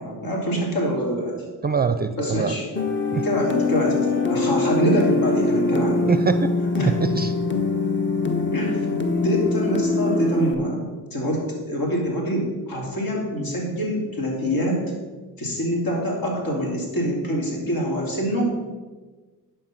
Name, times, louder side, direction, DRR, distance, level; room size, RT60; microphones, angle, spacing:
voice 1, 0.0-1.4 2.1-2.7 3.2-6.1 6.8-7.0 8.5-14.8 15.4-18.5, equal, 65° left, -1 dB, 3.1 m, -25 dB
voice 2, 1.6-2.5 3.1-3.2 6.1-6.5 7.0-7.3, right 5 dB, 25° right, 11 dB, 0.5 m, -23 dB
sound 1, 2.7-10.5, left 3 dB, 30° left, 1.2 m, -23 dB
11.0 x 4.6 x 6.0 m, 1.3 s
cardioid pair, 75°, 38 cm